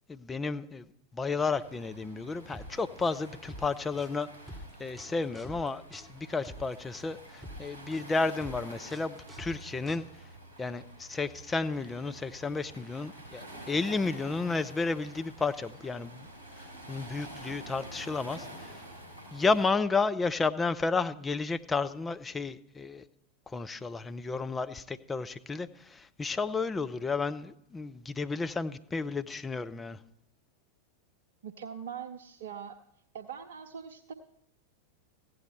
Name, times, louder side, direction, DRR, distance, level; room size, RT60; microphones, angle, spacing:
voice 1, 0.1-0.9 1.1-4.3 4.8-10.0 10.6-16.3 16.6-18.8 19.3-23.0 23.5-30.0, left 4 dB, 15° left, 10 dB, 0.6 m, -32 dB
Waves surf, 1.4-19.7, right 1 dB, 80° left, 3.6 m, -48 dB
sound 1, 2.5-10.4, equal, 10° right, 2.8 m, -47 dB
voice 2, 31.4-32.8 33.1-34.1, right 8 dB, 60° right, 5 dB, 0.7 m, -42 dB
15.5 x 9.4 x 4.6 m, 0.75 s
figure-of-eight pair, 90°, 0 cm